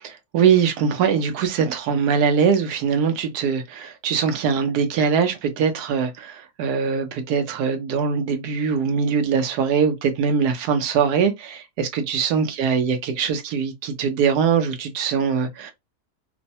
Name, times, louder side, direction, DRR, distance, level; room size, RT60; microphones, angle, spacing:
voice 1, 0.0-15.7, right 6 dB, 85° right, 1.2 m, -22 dB
3.1 x 2.1 x 2.6 m
omnidirectional pair, 1.7 m